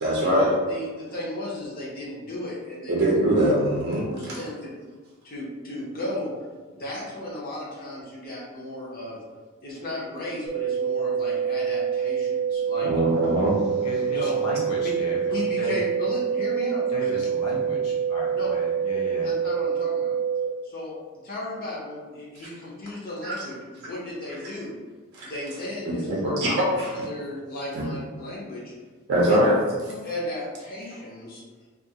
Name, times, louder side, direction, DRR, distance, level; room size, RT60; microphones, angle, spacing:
voice 1, 0.0-0.5 2.9-4.1 12.8-13.6 23.2-23.3 25.1-25.3 25.8-27.1 27.7-27.8 29.1-29.6, right 1 dB, 50° right, -5 dB, 0.5 m, -22 dB
voice 2, 0.7-3.1 4.1-4.7 5.2-6.3 6.7-9.2 9.6-12.9 14.1-14.3 14.8-14.9 15.3-17.1 18.3-18.5 19.2-20.2 20.6-20.9 21.2-23.5 23.8-24.8 25.2-26.4 27.0-28.7 29.3-29.4 30.0-31.4, left 1 dB, 40° left, -5 dB, 0.5 m, -35 dB
sound 1, 10.5-20.5, right 7 dB, 5° right, 0.6 m, -26 dB
voice 3, 13.8-15.2 15.6-15.8 16.9-19.3, left 1 dB, 85° left, -3 dB, 0.6 m, -34 dB
2.3 x 2.3 x 2.7 m, 1.4 s
head